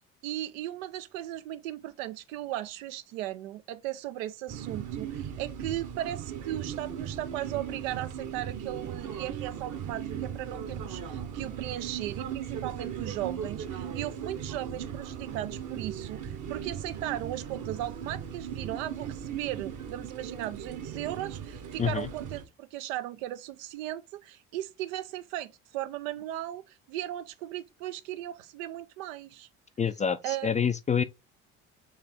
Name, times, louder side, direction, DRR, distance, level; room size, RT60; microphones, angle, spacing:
voice 1, 0.2-29.5 30.2-30.5, right 14 dB, 75° right, 0.6 m, -37 dB
sound 1, 4.5-22.4, right 8 dB, 45° right, 1.0 m, -38 dB
voice 2, 21.8-22.1 29.8-31.0, left 7 dB, 20° left, 0.3 m, -27 dB
4.7 x 3.2 x 3.5 m
hypercardioid pair, 60°, 40 cm